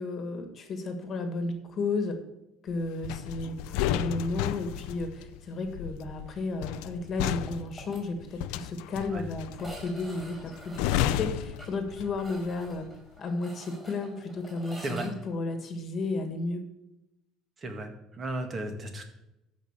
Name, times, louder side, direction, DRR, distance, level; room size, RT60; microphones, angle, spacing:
voice 1, 0.0-2.1 2.6-12.9 13.2-16.6, left 3 dB, 35° left, 7 dB, 1.7 m, -33 dB
sound 1, 3.0-12.4 12.7-13.0, left 12 dB, 85° left, 0.6 m, -33 dB
sound 2, 7.5-8.0 8.3-8.4 8.7-8.8 9.5-15.1, equal, 5° right, 4.3 m, -48 dB
voice 2, 17.6-19.1, right 1 dB, 25° right, 5 dB, 1.8 m, -35 dB
13.5 x 5.3 x 7.3 m, 0.92 s
cardioid pair, 155°, 0 cm